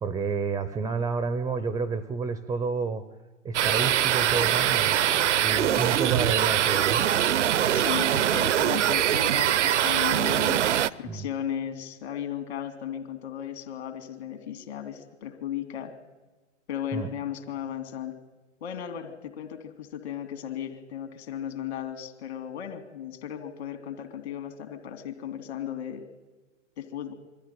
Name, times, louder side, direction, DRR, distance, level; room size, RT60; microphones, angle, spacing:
voice 1, 0.0-3.0 3.4-7.1 11.0-11.3 16.9-17.1, right 5 dB, 10° right, 13 dB, 0.6 m, -30 dB
sound 1, 3.5-10.9, right 11 dB, 65° right, 0.7 m, -23 dB
voice 2, 7.7-15.9 16.7-18.2 18.6-26.0 26.8-27.1, left 9 dB, 55° left, 8 dB, 2.7 m, -36 dB
22.5 x 14.0 x 9.2 m, 1.2 s
figure-of-eight pair, 110°, 38 cm